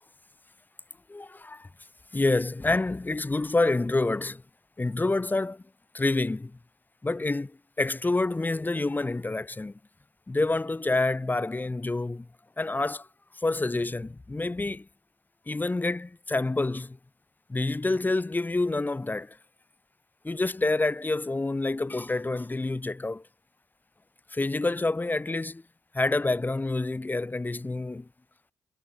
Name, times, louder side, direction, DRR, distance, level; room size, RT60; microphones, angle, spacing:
voice 1, 1.1-1.7 2.1-4.4 4.8-5.6 5.9-6.6 7.0-9.8 10.3-12.3 12.6-13.1 13.3-14.9 15.5-17.0 17.5-19.4 20.2-23.2 24.3-25.6 25.9-28.1, left 2 dB, 25° left, 5.2 m, -28 dB
supercardioid pair, 50°, 8 cm